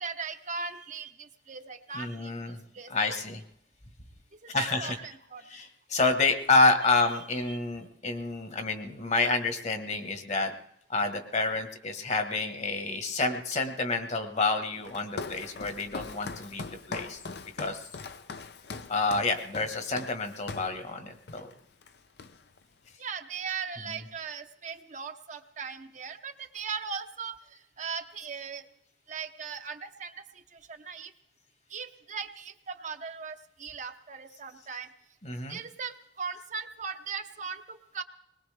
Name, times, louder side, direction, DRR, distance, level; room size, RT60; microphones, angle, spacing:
voice 1, 0.0-3.2 4.4-5.4 7.5-7.6 23.0-28.7 29.1-30.3 30.5-31.1 31.7-34.9 35.5-38.0, right 6 dB, 45° right, 7 dB, 0.9 m, -39 dB
voice 2, 1.9-2.6 2.9-3.4 4.5-5.0 5.5-10.5 10.9-17.2 17.6-17.8 18.9-21.5 23.9-24.0 35.2-35.6, left 3 dB, 40° left, 7 dB, 1.4 m, -28 dB
Walk footsteps, 14.8-20.8 21.3-21.5 21.8-22.6, left 4 dB, 65° left, 0.7 m, -41 dB
21.0 x 19.5 x 3.4 m, 0.75 s
head